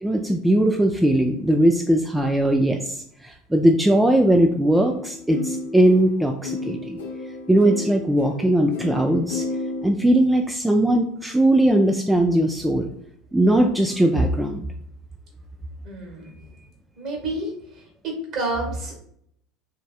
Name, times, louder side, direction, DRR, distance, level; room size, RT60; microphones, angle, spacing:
voice 1, 0.0-7.0 7.5-9.4 9.8-12.9 13.3-14.6, right 1 dB, 5° right, 2 dB, 0.3 m, -19 dB
sound 1, 4.7-9.9, left 3 dB, 70° left, 0.6 m, -33 dB
voice 2, 15.8-16.3 17.0-17.5 18.0-18.9, right 2 dB, 45° right, 0 dB, 1.5 m, -29 dB
3.4 x 3.1 x 2.4 m, 0.70 s
figure-of-eight pair, 70°, 0 cm